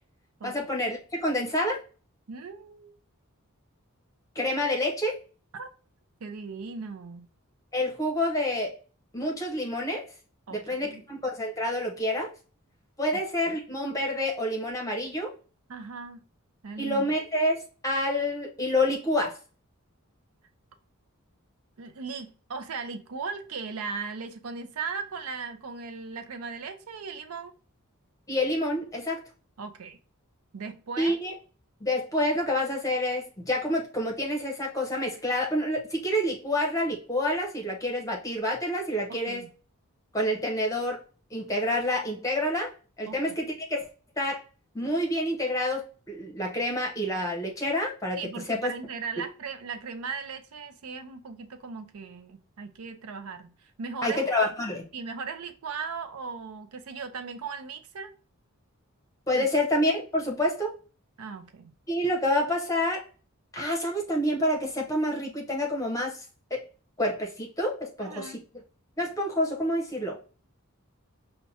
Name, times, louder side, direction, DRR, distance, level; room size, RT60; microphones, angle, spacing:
voice 1, 0.4-1.8 4.3-5.2 7.7-8.8 9.1-10.0 10.5-12.3 13.0-15.3 16.8-19.4 28.3-29.2 31.0-31.3 31.8-39.5 40.1-41.0 41.3-42.7 43.0-43.8 44.2-44.4 44.7-48.2 48.5-48.7 54.0-54.9 59.3-60.7 61.9-63.0 63.5-66.2 66.5-66.6 67.0-68.6 69.0-70.2, left 1 dB, 15° left, 0.8 m, -28 dB
voice 2, 2.3-3.0 5.5-5.7 6.2-7.3 10.5-11.0 13.1-13.2 15.7-16.2 16.6-17.1 21.8-27.5 29.6-30.0 30.5-31.2 39.2-39.5 43.1-43.2 48.2-53.5 53.8-54.3 54.9-58.1 59.3-59.5 61.2-61.7 68.0-68.4, right 5 dB, 75° right, 0.5 m, -38 dB
5.6 x 2.2 x 2.7 m
head